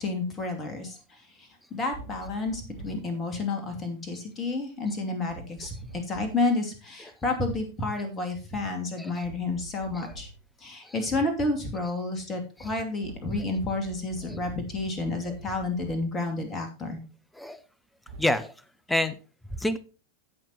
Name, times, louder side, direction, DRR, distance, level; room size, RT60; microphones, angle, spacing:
voice 1, 0.0-10.3 10.6-17.0, left 2 dB, 20° left, 4 dB, 2.6 m, -30 dB
sound 1, 1.9-3.1 5.3-6.5 9.2-10.5 13.0-16.2 18.1-18.2, right 3 dB, 65° right, 2.9 m, -45 dB
voice 2, 18.2-18.5 18.9-19.2 19.6-19.8, left 1 dB, 5° left, 16 dB, 0.8 m, -28 dB
16.5 x 6.1 x 3.0 m, 0.33 s
figure-of-eight pair, 90°, 0 cm